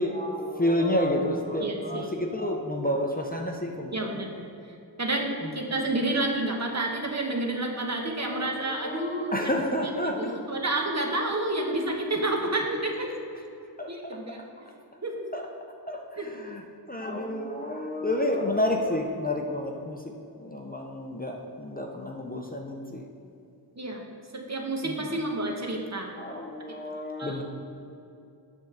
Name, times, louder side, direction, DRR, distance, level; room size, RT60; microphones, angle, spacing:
voice 1, 0.0-4.2 5.4-5.7 8.2-10.5 13.8-13.9 15.3-15.5 15.9-20.0 20.4-23.1 24.8-25.2 26.2-27.4, left 1 dB, 20° left, 1 dB, 0.6 m, -30 dB
voice 2, 1.6-2.1 3.9-4.5 5.0-9.4 10.2-13.1 13.9-14.4 15.0-15.3 16.2-16.3 23.8-24.0 24.3-26.1 27.2-27.3, right 2 dB, 40° right, 1 dB, 1.1 m, -29 dB
8.0 x 3.6 x 6.5 m, 2.7 s
wide cardioid pair, 60°, 41 cm